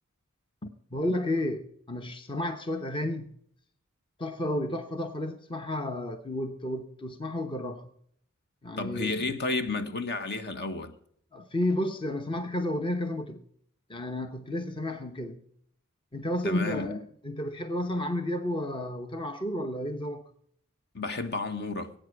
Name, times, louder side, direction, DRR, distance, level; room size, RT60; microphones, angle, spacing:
voice 1, 0.6-3.3 4.2-7.9 8.6-9.3 11.3-13.4 13.9-15.4 16.1-20.2, left 1 dB, 25° left, 0.9 m, -32 dB
voice 2, 8.8-10.9 16.4-16.9 20.9-21.9, left 3 dB, 50° left, 1.3 m, -32 dB
18.0 x 8.9 x 4.7 m
head